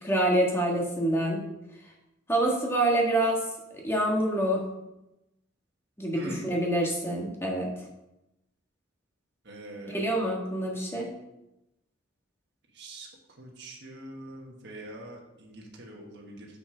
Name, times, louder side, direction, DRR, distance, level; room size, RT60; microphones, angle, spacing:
voice 1, 0.0-1.4 2.3-3.4 3.7-4.6 6.0-7.7 9.8-11.1, right 1 dB, 10° left, -1 dB, 1.6 m, -26 dB
voice 2, 6.1-6.4 9.5-10.1 12.8-13.1 13.4-16.5, right 1 dB, 60° right, -1 dB, 1.5 m, -43 dB
6.8 x 6.1 x 5.0 m, 0.91 s
head